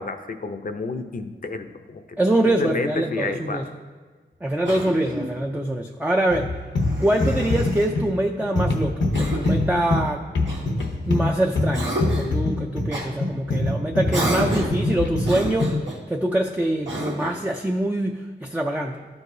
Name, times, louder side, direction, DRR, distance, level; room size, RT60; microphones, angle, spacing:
voice 1, 0.0-2.0 2.6-3.6, left 3 dB, 50° left, 8 dB, 0.6 m, -30 dB
voice 2, 2.2-3.7 4.4-6.5 7.0-10.3 11.1-15.8 16.1-19.1, right 1 dB, 10° right, 2 dB, 0.4 m, -24 dB
Cough, 4.6-5.4 6.8-7.9 9.1-9.7 10.5-11.3 11.7-12.4 12.9-13.1 14.1-14.8 15.2-16.0 16.8-17.4, right 1 dB, 90° right, 1.5 m, -30 dB
sound 1, 6.3-15.9, left 2 dB, 75° left, 0.8 m, -24 dB
13.0 x 4.7 x 2.7 m, 1.5 s
wide cardioid pair, 85°, 19 cm